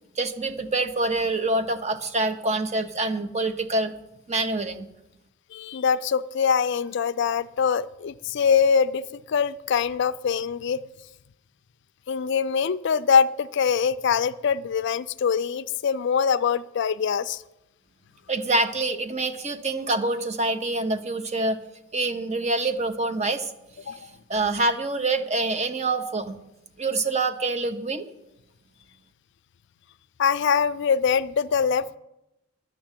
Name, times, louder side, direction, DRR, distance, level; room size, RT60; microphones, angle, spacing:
voice 1, 0.2-3.9 4.3-4.9 18.3-21.6 21.9-23.5 24.3-26.4 26.8-28.1, right 2 dB, 35° right, 9 dB, 0.9 m, -26 dB
voice 2, 5.5-10.8 12.1-17.4 23.9-24.1 30.2-32.0, left 6 dB, 60° left, 14 dB, 0.4 m, -23 dB
11.0 x 6.5 x 9.0 m, 0.89 s
head